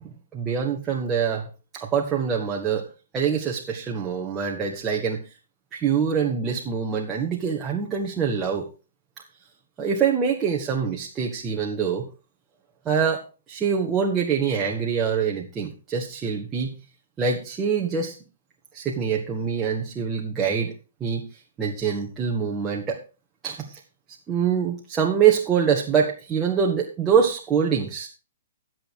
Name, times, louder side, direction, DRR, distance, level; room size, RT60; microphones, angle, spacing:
voice 1, 0.0-2.8 3.1-5.2 5.7-8.7 9.8-12.1 12.9-16.8 17.2-18.2 18.7-20.7 21.0-23.0 23.4-23.8 24.3-28.1, right 7 dB, 20° right, -1 dB, 1.7 m, -25 dB
13.0 x 7.7 x 4.8 m, 0.34 s
hypercardioid pair, 130°, 0 cm